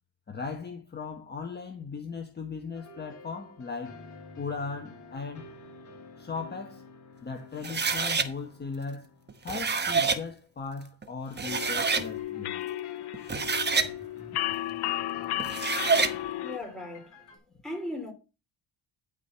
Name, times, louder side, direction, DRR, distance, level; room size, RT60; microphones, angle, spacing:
voice 1, 0.3-4.0 4.4-5.5 6.2-6.8 7.2-9.1 9.4-12.7, left 5 dB, 25° left, 1.1 m, -38 dB
sound 1, 2.7-10.5 11.3-17.4, left 3 dB, 45° left, 4.5 m, -51 dB
Jointer plane, 7.6-8.3 9.3-10.2 11.0-11.1 11.4-12.1 13.1-13.9 15.4-16.2, right 5 dB, 25° right, 1.0 m, -27 dB
sound 2, 11.5-16.6, left 14 dB, 65° left, 0.7 m, -34 dB
voice 2, 16.4-17.1 17.6-18.1, left 1 dB, ahead, 3.4 m, -37 dB
12.0 x 4.8 x 5.6 m
cardioid pair, 165°, 43 cm